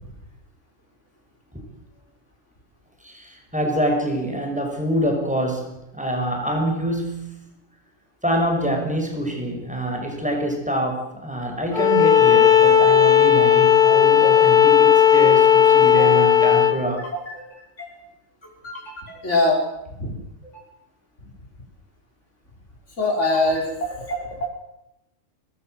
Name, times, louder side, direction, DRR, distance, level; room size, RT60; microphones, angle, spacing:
voice 1, 3.0-7.4 8.2-17.0, right 1 dB, 5° right, 2 dB, 6.3 m, -25 dB
Bowed string instrument, 11.7-16.8, left 9 dB, 40° left, 2.0 m, -15 dB
voice 2, 15.9-16.3 16.6-18.0 18.4-19.6 20.0-20.1 20.4-20.6 21.2-21.3 23.0-24.5, left 2 dB, 60° left, -1 dB, 6.1 m, -25 dB
24.5 x 20.5 x 8.0 m, 0.85 s
omnidirectional pair, 1.4 m